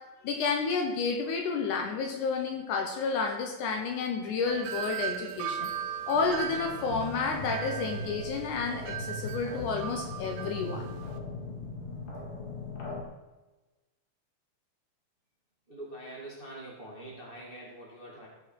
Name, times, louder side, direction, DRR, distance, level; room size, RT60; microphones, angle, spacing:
voice 1, 0.2-5.7 6.1-10.9, left 4 dB, 70° left, 4 dB, 2.1 m, -30 dB
Wind chime, 4.5-11.2, right 9 dB, 80° right, 2.5 m, -38 dB
sound 1, 6.1-13.0, left 5 dB, 50° left, 1.5 m, -42 dB
sound 2, 6.9-12.2, left 1 dB, 85° left, 4.2 m, -41 dB
voice 2, 15.7-18.3, right 1 dB, 25° right, -4 dB, 1.2 m, -44 dB
15.0 x 5.6 x 4.5 m, 1.1 s
omnidirectional pair, 4.1 m